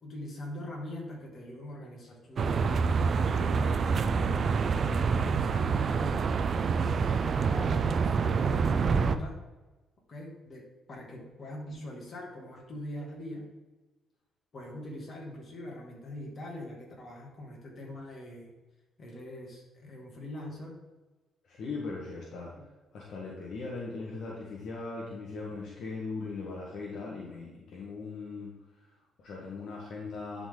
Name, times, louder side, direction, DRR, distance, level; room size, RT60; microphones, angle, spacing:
voice 1, 0.0-2.9 3.3-6.2 7.2-9.3 10.1-10.6 10.9-13.4 14.5-18.5 19.0-20.8, left 1 dB, 45° left, -1 dB, 2.4 m, -42 dB
sound 1, 2.4-9.2, right 5 dB, 50° right, 0.5 m, -27 dB
voice 2, 21.4-30.5, left 3 dB, 70° left, -4 dB, 1.4 m, -39 dB
11.0 x 4.1 x 3.8 m, 1.1 s
cardioid pair, 90°, 0 cm